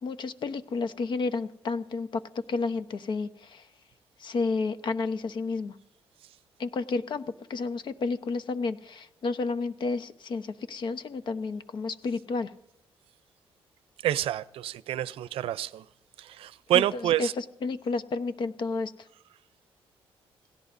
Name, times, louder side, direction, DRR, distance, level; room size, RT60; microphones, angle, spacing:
voice 1, 0.0-2.2 2.5-3.7 4.2-5.8 6.6-12.5 16.7-18.9, left 4 dB, 55° left, 12 dB, 1.0 m, -31 dB
voice 2, 14.0-15.8 16.2-17.3, right 12 dB, 80° right, 17 dB, 0.6 m, -28 dB
27.5 x 17.0 x 2.7 m, 0.83 s
cardioid pair, 100°, 9 cm